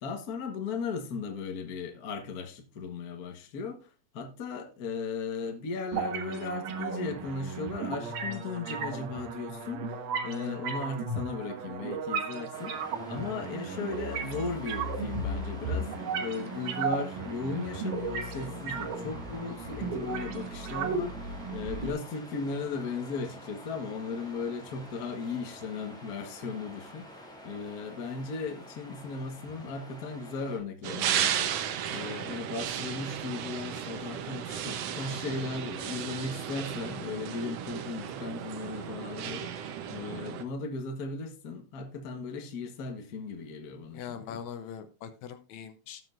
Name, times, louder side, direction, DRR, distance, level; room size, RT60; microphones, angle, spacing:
voice 1, 0.0-31.5 31.9-44.4, left 4 dB, 50° left, 1.1 m, -37 dB
sound 1, 5.9-21.9, right 4 dB, 85° right, 2.7 m, -35 dB
Waves surf, 12.5-30.6, equal, ahead, 1.8 m, -48 dB
sound 2, 30.8-40.4, right 9 dB, 70° right, 1.7 m, -34 dB
voice 2, 43.9-46.0, left 8 dB, 75° left, 2.1 m, -41 dB
17.5 x 6.2 x 2.5 m
omnidirectional pair, 3.5 m